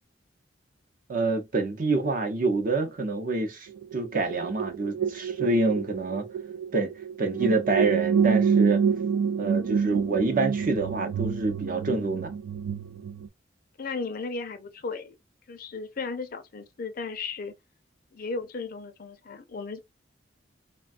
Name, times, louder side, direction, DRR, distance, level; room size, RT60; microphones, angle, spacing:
voice 1, 1.1-6.3 6.7-6.9 7.2-8.8 9.4-12.3, right 3 dB, 45° right, 0.6 m, -27 dB
sound 1, 3.7-13.3, right 6 dB, 80° right, 0.3 m, -27 dB
voice 2, 13.8-15.2 15.5-17.5 18.1-19.8, left 4 dB, 50° left, 0.5 m, -35 dB
3.4 x 2.2 x 2.4 m
head